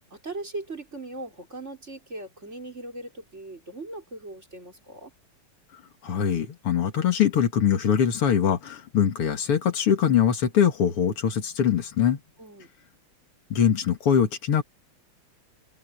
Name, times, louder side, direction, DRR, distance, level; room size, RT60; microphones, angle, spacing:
voice 1, 0.1-5.1 12.4-12.7, right 2 dB, 30° right, 5.1 m, -39 dB
voice 2, 6.0-12.2 13.5-14.6, left 8 dB, 85° left, 3.0 m, -22 dB
open air
omnidirectional pair, 2.4 m